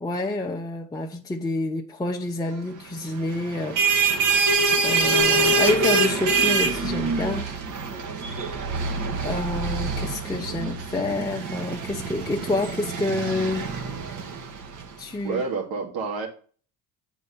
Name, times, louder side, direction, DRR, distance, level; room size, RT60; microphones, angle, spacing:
voice 1, 0.0-3.8 4.8-7.5 9.2-13.7 15.0-15.4, left 2 dB, 10° left, 0.8 m, -28 dB
sound 1, 3.5-14.8, right 3 dB, 55° right, 1.6 m, -25 dB
voice 2, 15.2-16.3, right 4 dB, 75° right, 2.6 m, -28 dB
8.3 x 4.5 x 5.7 m
supercardioid pair, 100°, 37 cm